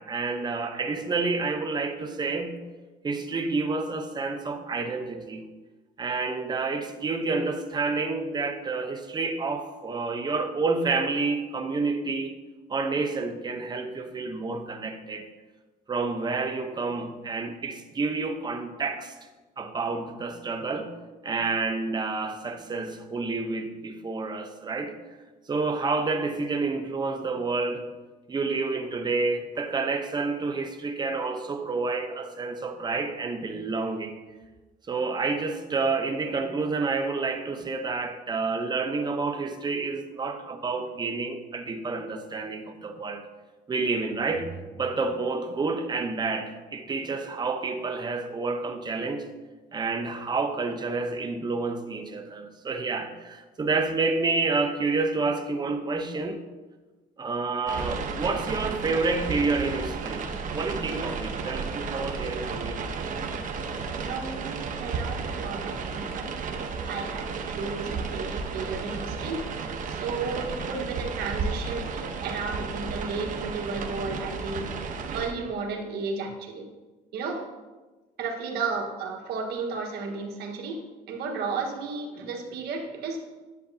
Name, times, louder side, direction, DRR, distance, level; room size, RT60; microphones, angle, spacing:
voice 1, 0.0-2.5 3.0-5.4 6.0-12.3 12.7-15.3 15.9-19.1 19.6-20.9 21.2-25.0 25.5-27.9 28.3-34.2 34.9-43.2 43.7-49.3 49.7-56.4 57.2-62.8, right 3 dB, 25° right, 5 dB, 0.8 m, -29 dB
sound 1, 57.7-75.3, right 5 dB, 50° right, 1.0 m, -33 dB
voice 2, 64.1-66.3 66.6-69.4 69.9-74.7 75.1-76.7 77.1-77.5 78.2-80.8 81.1-83.2, right 4 dB, 75° right, 2 dB, 1.4 m, -33 dB
10.5 x 8.1 x 2.8 m, 1.2 s
cardioid pair, 110°, 17 cm